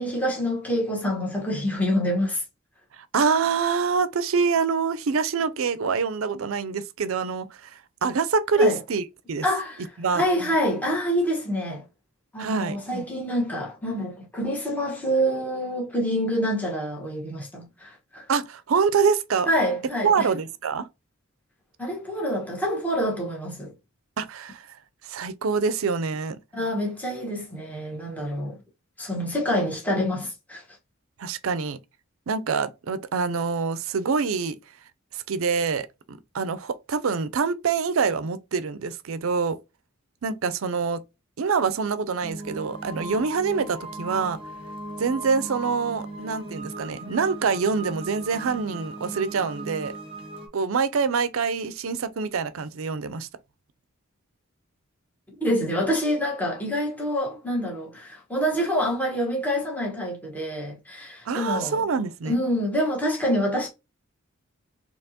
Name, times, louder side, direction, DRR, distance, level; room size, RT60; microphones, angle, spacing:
voice 1, 0.0-2.4 8.6-8.8 9.4-11.8 12.3-18.2 19.4-20.3 21.8-23.7 26.5-28.6 29.0-30.6 55.4-61.9 62.2-63.7, equal, 5° left, 1.2 m, -26 dB
voice 2, 3.0-9.4 10.0-10.3 12.4-12.8 18.3-19.5 20.0-20.9 24.2-24.7 25.0-26.4 31.2-31.8 32.3-34.6 35.1-39.6 40.2-41.0 41.4-44.4 45.0-49.9 50.5-53.3 61.3-62.3, right 5 dB, 75° right, 0.5 m, -25 dB
sound 1, 42.2-50.5, right 2 dB, 25° right, 1.0 m, -38 dB
4.3 x 2.9 x 2.8 m
head